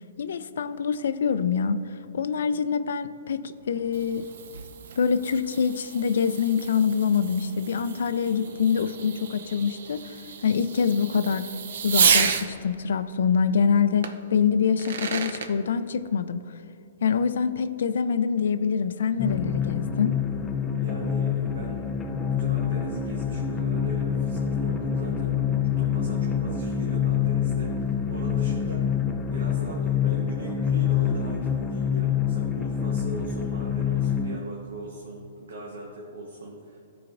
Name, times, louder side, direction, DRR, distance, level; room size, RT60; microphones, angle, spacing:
voice 1, 0.2-1.8 2.1-4.3 5.0-10.1 10.4-11.5 11.8-16.4 17.0-20.1, left 6 dB, 75° left, 12 dB, 0.4 m, -25 dB
Fireworks, 3.6-12.5 14.0-14.1 14.6-15.5, right 6 dB, 70° right, 0.6 m, -30 dB
sound 1, 19.2-34.4, left 8 dB, 15° left, 0.5 m, -26 dB
voice 2, 20.7-21.9 22.4-25.3 25.8-36.8, right 1 dB, 90° right, -2 dB, 1.1 m, -40 dB
13.5 x 4.8 x 2.6 m, 2.9 s
hypercardioid pair, 140°, 0 cm